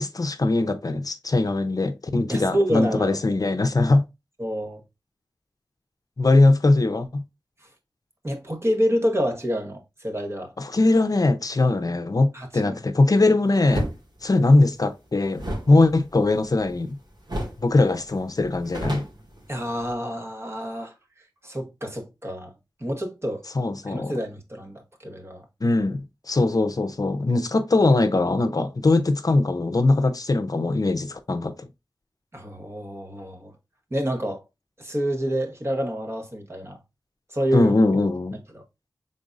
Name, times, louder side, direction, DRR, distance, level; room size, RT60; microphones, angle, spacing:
voice 1, 0.0-4.1 6.2-7.2 10.6-13.9 14.2-17.0 17.6-19.0 23.5-24.1 25.6-26.0 26.3-31.7 37.5-38.4, left 2 dB, 50° left, 0.6 m, -21 dB
voice 2, 2.3-3.2 4.4-4.8 8.2-10.5 12.3-12.8 19.5-20.9 21.4-22.5 22.8-23.4 23.9-25.4 32.3-33.5 33.9-34.4 34.8-36.8 37.3-37.7 38.5-38.6, equal, 35° right, 1.3 m, -28 dB
sound 1, 13.7-14.0 15.3-16.9 17.3-17.7 18.0-18.1 18.4-19.9, right 1 dB, 70° right, 1.9 m, -31 dB
5.2 x 3.9 x 2.5 m
wide cardioid pair, 55°, 8 cm